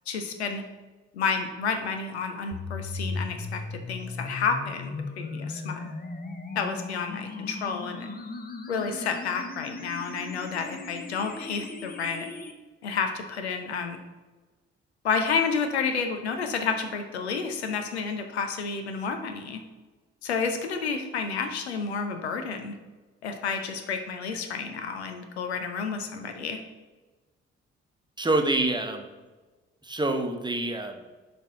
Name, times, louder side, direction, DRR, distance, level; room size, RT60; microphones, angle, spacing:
voice 1, 0.1-0.6 1.1-3.6 3.9-5.9 6.6-8.1 8.7-12.3 12.8-14.0 15.0-19.6 20.2-22.7 23.2-26.6, left 5 dB, 90° left, 6 dB, 0.5 m, -30 dB
sound 1, 2.5-12.5, left 3 dB, 30° left, 0.8 m, -37 dB
voice 2, 28.2-29.0 29.8-31.0, right 2 dB, 15° right, 4 dB, 0.9 m, -26 dB
6.8 x 4.3 x 3.6 m, 1.2 s
figure-of-eight pair, 40°, 32 cm